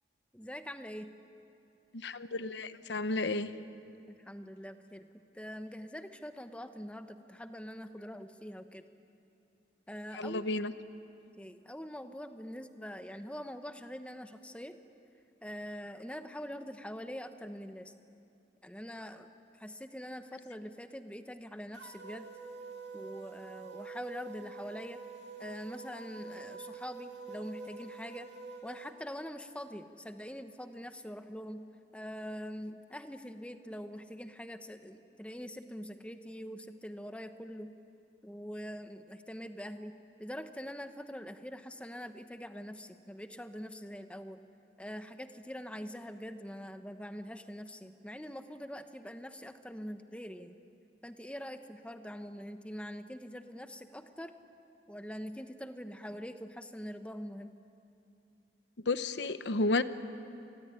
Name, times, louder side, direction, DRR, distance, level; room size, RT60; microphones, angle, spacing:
voice 1, 0.3-1.1 4.1-5.1 5.3-8.8 9.9-10.4 11.4-14.8 15.4-17.9 18.6-19.3 19.6-22.3 22.9-25.0 25.4-28.3 28.6-31.7 31.9-37.7 38.2-44.4 44.8-50.5 51.0-54.3 54.9-57.6, equal, 5° left, 8 dB, 1.0 m, -44 dB
voice 2, 1.9-3.5 10.1-10.7 58.9-59.8, left 2 dB, 85° left, 12 dB, 1.0 m, -32 dB
sound 1, 21.7-28.9, right 4 dB, 80° right, 2.5 m, -46 dB
27.5 x 20.5 x 9.9 m, 2.6 s
head